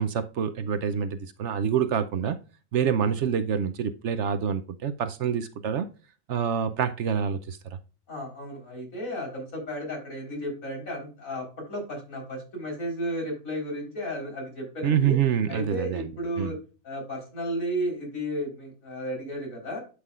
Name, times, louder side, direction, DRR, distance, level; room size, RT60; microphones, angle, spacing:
voice 1, 0.0-2.4 2.7-5.9 6.3-7.8 14.8-16.1 16.4-16.5, right 8 dB, 65° right, 0.9 m, -26 dB
voice 2, 8.1-15.2 15.5-16.6 16.8-19.8, equal, 75° left, 4.5 m, -33 dB
11.5 x 5.9 x 2.4 m
omnidirectional pair, 1.4 m